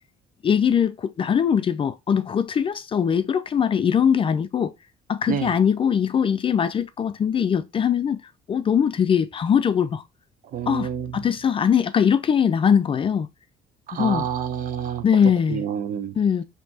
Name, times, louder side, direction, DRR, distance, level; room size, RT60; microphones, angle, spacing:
voice 1, 0.4-4.7 5.1-8.2 8.5-10.0 10.7-13.3 13.9-14.3 15.0-15.6 16.2-16.4, left 7 dB, 30° left, 0.4 m, -21 dB
voice 2, 10.5-11.1 13.9-15.0 15.5-16.1, right 8 dB, 55° right, 0.6 m, -28 dB
4.4 x 2.8 x 2.7 m
cardioid pair, 110°, 17 cm